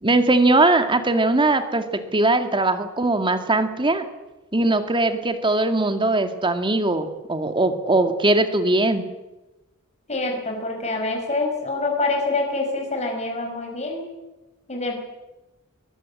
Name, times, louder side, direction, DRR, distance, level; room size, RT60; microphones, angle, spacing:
voice 1, 0.0-4.1 4.5-9.1, right 2 dB, 25° right, 8 dB, 2.2 m, -20 dB
voice 2, 10.1-14.1 14.7-15.0, left 2 dB, 30° left, 2 dB, 5.1 m, -26 dB
22.5 x 19.5 x 8.5 m, 1.0 s
head